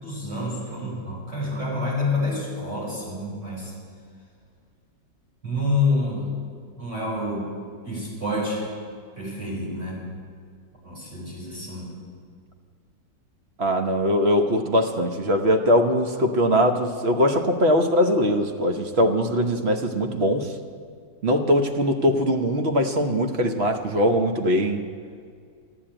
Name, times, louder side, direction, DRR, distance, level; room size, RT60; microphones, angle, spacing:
voice 1, 0.0-3.7 5.4-6.2 6.8-7.5 7.8-8.7 9.2-10.0 10.8-11.9, left 2 dB, 70° right, -5 dB, 5.7 m, -28 dB
voice 2, 13.6-20.5 21.2-24.8, equal, 45° right, 5 dB, 1.1 m, -21 dB
14.0 x 10.0 x 8.8 m, 2.1 s
omnidirectional pair, 1.9 m